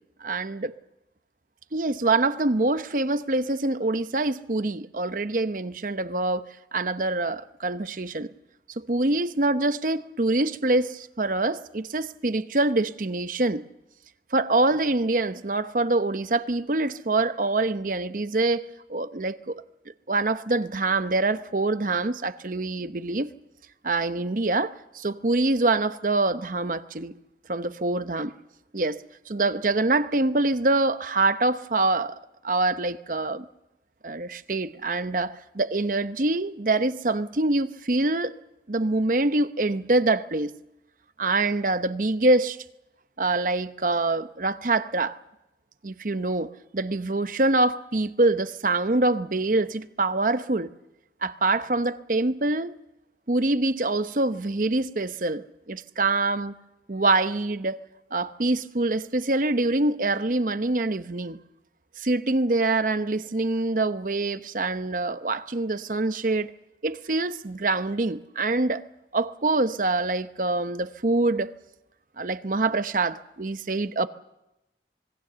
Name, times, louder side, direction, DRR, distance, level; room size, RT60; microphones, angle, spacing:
voice 1, 0.2-0.7 1.7-8.3 8.9-13.6 14.3-18.6 18.9-19.6 20.1-23.3 23.8-27.1 27.5-28.3 28.7-32.1 32.4-33.5 34.0-38.3 38.7-40.5 41.2-42.6 43.2-45.2 45.8-50.7 51.2-52.7 53.3-56.5 56.9-57.8 58.1-61.4 62.0-66.5 66.8-68.8 69.1-71.5 72.2-74.1, right 2 dB, 45° right, 0.8 m, -25 dB
26.0 x 21.5 x 6.9 m
head